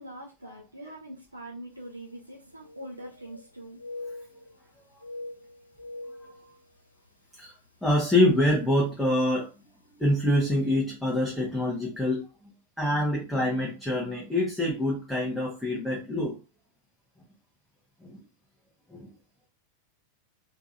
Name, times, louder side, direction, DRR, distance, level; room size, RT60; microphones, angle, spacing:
voice 1, 0.0-3.8, right 1 dB, 85° right, -2 dB, 0.7 m, -43 dB
sound 1, 1.8-1.9 2.2-3.5 3.8-4.7 4.9-7.1 7.5-7.7 8.3-8.6 9.6-9.7 10.1-10.2, left 2 dB, 85° left, 0.3 m, -43 dB
voice 2, 6.2-6.5 7.4-7.5 7.8-9.5 10.0-12.2 12.8-16.4 18.0-18.2 18.9-19.1, left 1 dB, ahead, -3 dB, 1.0 m, -26 dB
3.6 x 2.9 x 2.5 m, 0.30 s
figure-of-eight pair, 90°, 0 cm